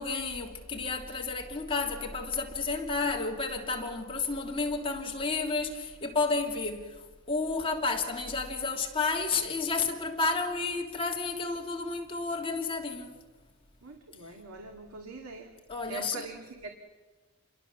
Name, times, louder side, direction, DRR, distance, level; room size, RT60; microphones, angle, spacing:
voice 1, 0.0-6.9 7.3-13.1 15.7-16.2, left 3 dB, 25° left, 2.9 m, -31 dB
voice 2, 13.8-15.5 15.9-16.7, right 3 dB, 80° right, 2.5 m, -42 dB
29.0 x 22.5 x 7.2 m
head